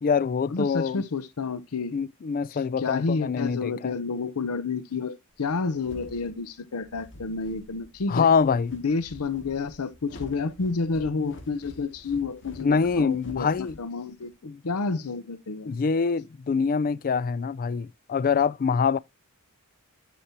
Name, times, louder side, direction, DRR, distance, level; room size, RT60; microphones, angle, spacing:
voice 1, 0.0-1.0 1.9-4.0 8.1-8.8 12.6-13.8 14.4-14.6 15.6-19.0, left 5 dB, 40° left, 0.4 m, -25 dB
voice 2, 0.5-1.9 2.5-8.3 8.7-14.3 14.6-15.8, left 4 dB, 75° left, 0.7 m, -30 dB
sound 1, 5.8-14.3, equal, 60° left, 2.0 m, -47 dB
10.0 x 5.9 x 2.8 m
head